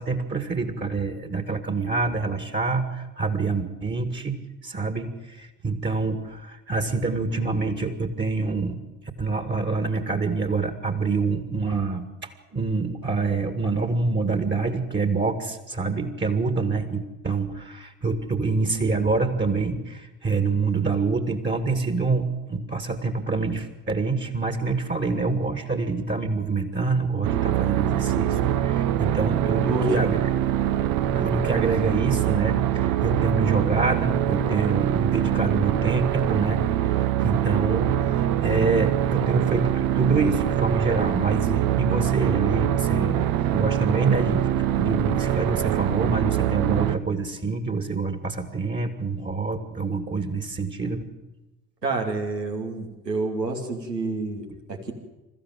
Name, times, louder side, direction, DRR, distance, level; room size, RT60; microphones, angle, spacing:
voice 1, 0.0-4.4 4.6-8.8 9.2-30.2 31.2-43.2 43.5-51.1, right 4 dB, 20° right, 8 dB, 2.2 m, -26 dB
sound 1, 27.2-47.0, right 11 dB, 45° right, 1.1 m, -24 dB
voice 2, 51.8-54.9, right 3 dB, 85° right, 2 dB, 2.8 m, -28 dB
27.5 x 14.5 x 7.8 m, 1.1 s
figure-of-eight pair, 55°, 48 cm